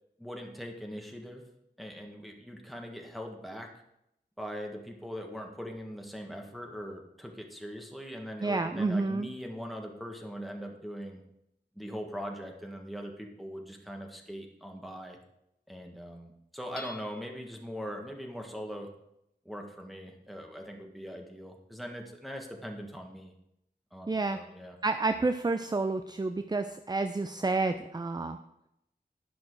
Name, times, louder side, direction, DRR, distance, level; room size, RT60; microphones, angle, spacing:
voice 1, 0.2-1.4 1.8-3.7 4.4-11.2 11.7-15.2 15.7-18.9 19.4-23.3 23.9-24.8, equal, ahead, 1 dB, 1.7 m, -41 dB
voice 2, 8.4-9.3 24.1-24.4 24.8-28.4, right 3 dB, 25° right, 9 dB, 0.5 m, -29 dB
Hammer / Chink clink, 16.8-17.6, left 3 dB, 60° left, 1.1 m, -46 dB
11.0 x 6.0 x 4.7 m, 0.81 s
wide cardioid pair, 60°, 18 cm